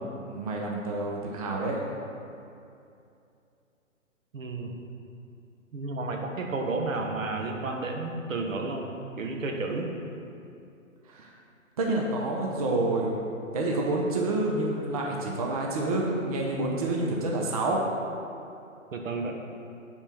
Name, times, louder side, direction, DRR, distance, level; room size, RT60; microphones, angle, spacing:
voice 1, 0.3-1.8 11.1-11.3 11.8-13.1 13.5-17.8, right 2 dB, 30° right, -1 dB, 0.7 m, -28 dB
voice 2, 4.3-4.7 5.7-8.9 9.2-9.9 18.9-19.3, right 3 dB, 75° right, 2 dB, 1.4 m, -31 dB
9.1 x 4.4 x 6.0 m, 2.6 s
hypercardioid pair, 155°, 40 cm